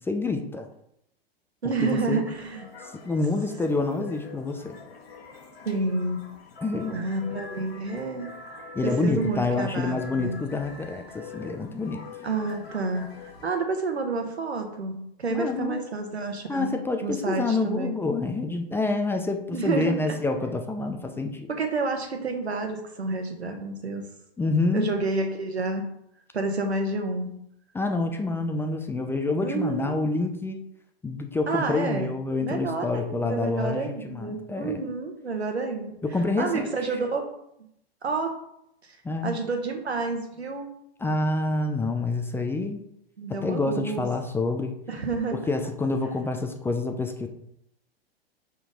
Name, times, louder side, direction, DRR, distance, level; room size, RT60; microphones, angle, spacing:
voice 1, 0.1-0.7 1.8-2.2 3.0-4.8 6.6-7.0 8.8-12.0 15.3-15.8 16.5-21.5 24.4-24.9 27.7-30.6 31.0-34.8 36.0-36.7 39.0-39.4 41.0-42.8 43.4-44.7 45.3-47.3, left 3 dB, 5° left, 5 dB, 0.5 m, -27 dB
voice 2, 1.6-2.7 5.6-6.2 6.9-8.3 8.8-10.4 12.2-16.7 17.0-17.9 19.5-20.0 21.5-24.1 24.7-25.9 26.3-27.4 29.4-29.9 31.5-32.1 32.4-35.9 36.4-37.2 38.0-38.3 38.8-39.0 39.2-40.7 43.2-44.1 44.9-45.4, right 3 dB, 90° right, 5 dB, 1.4 m, -29 dB
sound 1, 2.4-13.4, left 4 dB, 70° left, 1.6 m, -45 dB
5.8 x 4.5 x 5.0 m, 0.77 s
hypercardioid pair, 110°, 31 cm